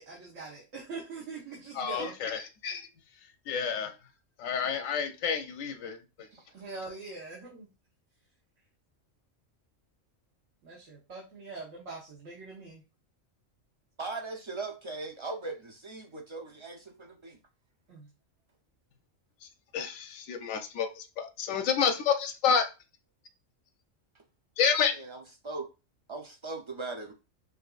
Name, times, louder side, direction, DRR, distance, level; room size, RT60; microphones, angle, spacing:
voice 1, 0.0-2.1 6.5-7.7 10.6-12.8 17.9-18.1, right 3 dB, 75° right, 1.5 m, -43 dB
voice 2, 1.7-2.9 3.5-3.9 4.4-6.0 19.7-22.6 24.6-24.9, left 6 dB, 90° left, 1.0 m, -29 dB
voice 3, 14.0-17.4 24.7-25.7 26.1-27.1, right 3 dB, 35° right, 0.4 m, -39 dB
5.7 x 2.6 x 2.4 m
omnidirectional pair, 1.3 m